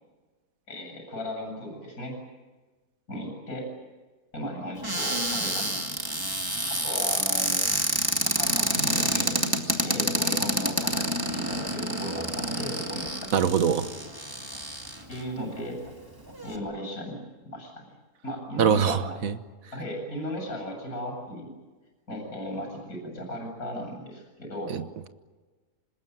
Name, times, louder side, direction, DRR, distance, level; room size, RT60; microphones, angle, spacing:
voice 1, 0.7-2.2 3.1-3.7 4.3-5.8 6.8-7.7 8.2-9.3 9.8-13.4 15.1-15.8 16.4-17.2 17.5-17.9 18.2-19.2 19.7-21.5 22.1-24.7, equal, 75° left, 2 dB, 8.2 m, -36 dB
Cupboard open or close, 4.8-15.2 15.9-16.0 16.2-16.6, right 1 dB, 15° right, 2.4 m, -28 dB
voice 2, 13.3-13.9 18.6-19.3 24.7-25.1, right 7 dB, 70° right, 11 dB, 1.5 m, -24 dB
26.0 x 20.5 x 9.3 m, 1.3 s
omnidirectional pair, 1.6 m